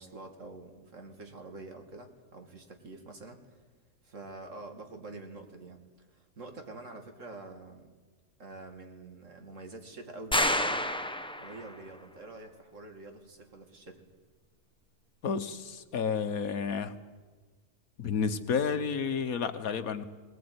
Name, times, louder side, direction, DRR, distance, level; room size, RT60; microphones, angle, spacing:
voice 1, 0.0-3.6 4.0-5.8 6.1-7.9 8.4-10.9 11.4-14.0, right 2 dB, 55° right, 5 dB, 2.7 m, -46 dB
sound 1, 10.3-11.8, left 1 dB, 5° left, 0.7 m, -29 dB
voice 2, 15.2-17.0 18.0-20.0, left 6 dB, 65° left, 10 dB, 1.5 m, -31 dB
20.0 x 20.0 x 9.5 m, 1.4 s
omnidirectional pair, 1.6 m